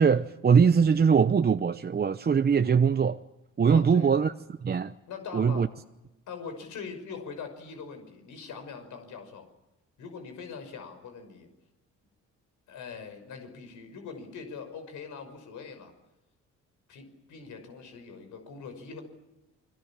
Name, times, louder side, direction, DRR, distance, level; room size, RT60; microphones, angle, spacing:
voice 1, 0.0-3.2 3.6-4.3 4.6-4.9 5.3-5.7, right 6 dB, 30° right, 0.8 m, -22 dB
voice 2, 3.7-4.3 5.1-5.7 6.3-9.5 10.0-11.5 12.7-15.9 16.9-19.0, left 5 dB, 80° left, 5.9 m, -42 dB
29.0 x 22.0 x 7.4 m
cardioid pair, 90°, 30 cm